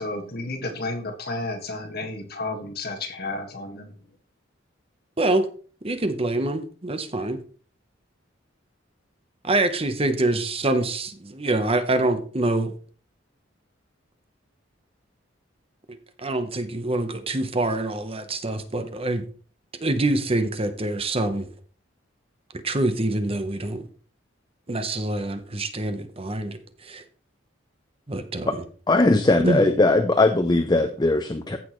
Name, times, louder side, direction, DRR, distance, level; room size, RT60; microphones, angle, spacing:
voice 1, 0.0-3.9, left 2 dB, 55° left, 4 dB, 1.8 m, -32 dB
voice 2, 5.8-7.4 9.4-12.7 16.2-19.2 19.8-21.5 22.6-23.8 24.7-27.0 28.1-28.5 29.4-29.6, right 2 dB, 30° right, 9 dB, 1.0 m, -25 dB
voice 3, 28.9-31.6, left 2 dB, 20° left, 7 dB, 0.6 m, -19 dB
15.0 x 6.1 x 3.2 m, 0.41 s
head